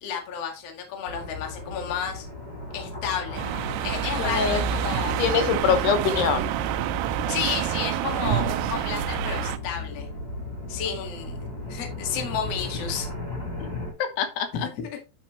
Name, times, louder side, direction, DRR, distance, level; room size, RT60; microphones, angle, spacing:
voice 1, 0.0-2.3 2.7-3.4 3.8-5.2 7.3-10.1 10.7-13.1 14.5-15.0, left 7 dB, 45° left, 3 dB, 2.5 m, -32 dB
sound 1, 1.0-13.9, left 3 dB, 25° left, 4.8 m, -36 dB
sound 2, 3.4-9.6, right 10 dB, 90° right, 2.8 m, -27 dB
voice 2, 4.2-4.6 5.2-6.5 14.0-14.5, left 7 dB, 80° left, 8 dB, 3.1 m, -24 dB
9.2 x 7.3 x 3.1 m, 0.28 s
omnidirectional pair, 4.8 m